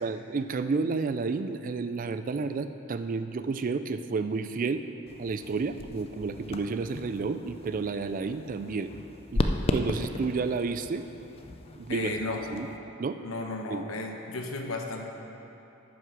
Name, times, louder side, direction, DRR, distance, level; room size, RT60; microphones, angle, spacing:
voice 1, 0.0-4.8 5.2-8.9 9.3-9.4 9.7-11.1 11.8-12.1 12.5-12.7 13.0-13.2 13.7-13.8, right 4 dB, 40° right, 10 dB, 0.3 m, -31 dB
sound 1, 5.1-12.8, left 2 dB, 30° left, 0.5 m, -35 dB
voice 2, 11.9-12.4 13.2-15.1, left 2 dB, 80° left, 2 dB, 1.0 m, -34 dB
9.3 x 6.4 x 6.0 m, 2.9 s
head